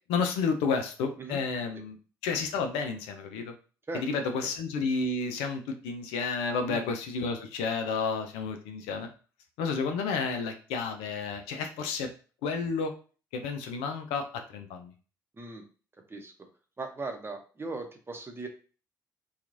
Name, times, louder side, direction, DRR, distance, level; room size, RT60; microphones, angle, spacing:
voice 1, 0.1-2.0 2.2-3.5 4.0-9.1 9.6-12.1 12.4-12.9 13.3-14.9, left 4 dB, 75° left, 5 dB, 0.5 m, -31 dB
voice 2, 15.3-15.6 16.1-16.3 16.8-18.5, right 3 dB, 25° right, 4 dB, 0.8 m, -38 dB
2.9 x 2.3 x 2.5 m, 0.37 s
hypercardioid pair, 50°, 10 cm